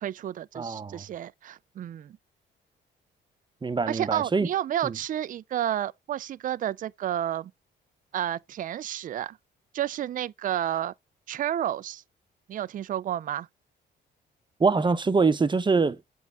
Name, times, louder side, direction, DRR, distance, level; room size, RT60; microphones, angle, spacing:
voice 1, 0.0-2.2 3.9-7.5 8.1-9.4 9.7-10.9 11.3-12.0 12.5-13.5, right 11 dB, 45° right, 0.4 m, -31 dB
voice 2, 0.5-1.0 3.6-4.5 4.8-5.0 14.6-16.0, right 4 dB, 25° right, 0.7 m, -24 dB
7.1 x 4.1 x 3.5 m
cardioid pair, 90°, 20 cm